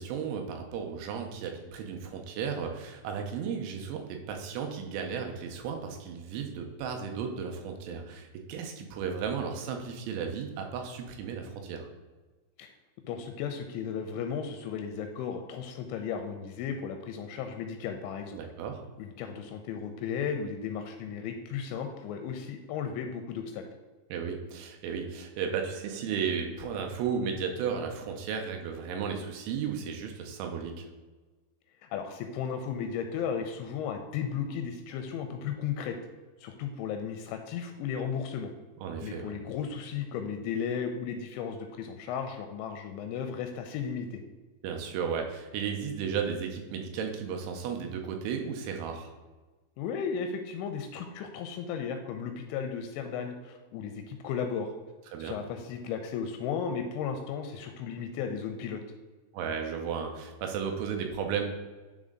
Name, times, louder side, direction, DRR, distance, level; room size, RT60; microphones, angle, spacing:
voice 1, 0.0-11.9 18.3-18.8 24.1-30.9 38.8-39.4 44.6-49.1 55.1-55.4 59.3-61.4, right 6 dB, 85° right, 4 dB, 3.2 m, -34 dB
voice 2, 13.0-18.4 19.0-23.6 31.9-36.0 36.4-38.5 39.0-44.2 49.8-54.7 55.2-58.8, left 7 dB, 85° left, 6 dB, 2.8 m, -35 dB
10.5 x 3.7 x 3.8 m, 1.3 s
omnidirectional pair, 5.5 m